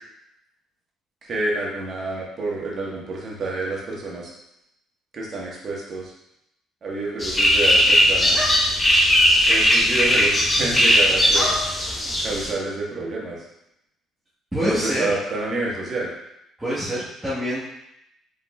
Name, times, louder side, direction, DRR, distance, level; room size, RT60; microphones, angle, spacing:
voice 1, 1.2-4.3 5.1-6.1 6.8-8.5 9.5-11.6 12.2-13.4 14.6-16.1, right 2 dB, 45° right, -3 dB, 1.4 m, -28 dB
sound 1, 7.2-12.5, equal, 20° left, 0.9 m, -18 dB
voice 2, 14.5-15.1 16.6-17.7, equal, 10° right, -12 dB, 1.4 m, -26 dB
5.2 x 3.7 x 2.4 m, 0.81 s
cardioid pair, 100°, 0 cm